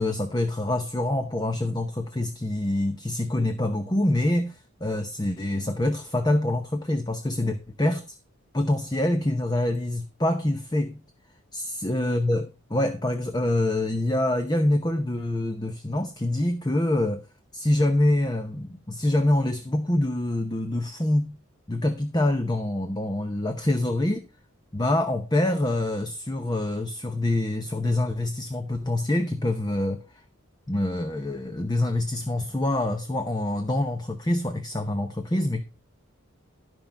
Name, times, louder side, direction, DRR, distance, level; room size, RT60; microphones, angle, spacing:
voice 1, 0.0-8.2 8.5-11.0 11.5-17.2 17.5-21.4 21.7-24.2 24.7-30.2 30.7-35.6, left 1 dB, 20° left, 0.8 m, -25 dB
12.5 x 5.4 x 5.6 m
head